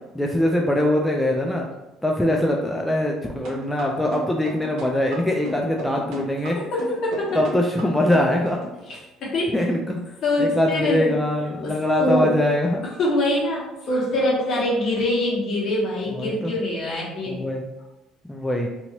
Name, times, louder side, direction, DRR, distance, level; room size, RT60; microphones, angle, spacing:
voice 1, 0.1-1.7 2.0-6.6 7.3-8.6 9.5-10.0 10.4-12.8 16.2-16.5 17.3-17.7 18.3-18.7, left 1 dB, 5° left, 0 dB, 0.3 m, -22 dB
sound 1, 3.5-8.8, right 1 dB, 70° right, 1.0 m, -35 dB
voice 2, 6.6-7.4 8.9-9.5 10.2-11.2 11.6-12.4 13.0-17.4, left 1 dB, 55° left, -5 dB, 1.1 m, -24 dB
2.8 x 2.7 x 2.9 m, 1.0 s
cardioid pair, 115°, 0 cm